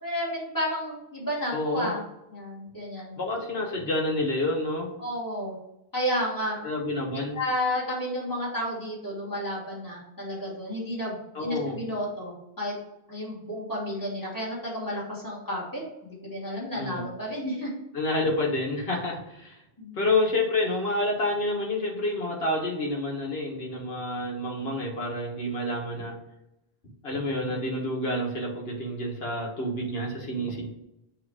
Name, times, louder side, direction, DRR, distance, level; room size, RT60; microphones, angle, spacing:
voice 1, 0.0-2.0 2.3-3.2 5.0-5.5 5.9-6.6 7.3-12.7 13.1-17.7 19.8-20.0, equal, 20° left, -6 dB, 2.6 m, -31 dB
voice 2, 1.5-1.9 3.2-4.9 6.6-7.4 11.3-11.8 16.7-17.1 17.9-19.5 20.0-26.1 27.0-30.7, left 1 dB, 75° left, 0 dB, 1.7 m, -28 dB
7.8 x 3.1 x 5.0 m, 0.88 s
omnidirectional pair, 1.0 m